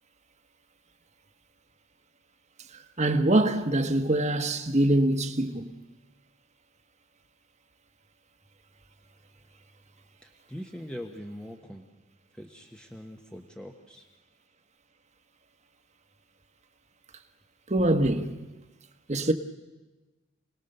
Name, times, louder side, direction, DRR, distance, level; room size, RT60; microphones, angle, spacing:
voice 1, 2.7-5.8 17.7-18.3 19.1-19.3, right 1 dB, 30° right, 1.3 m, -24 dB
voice 2, 10.2-11.9 12.3-14.0, equal, 5° left, 1.2 m, -42 dB
29.0 x 19.5 x 6.8 m
head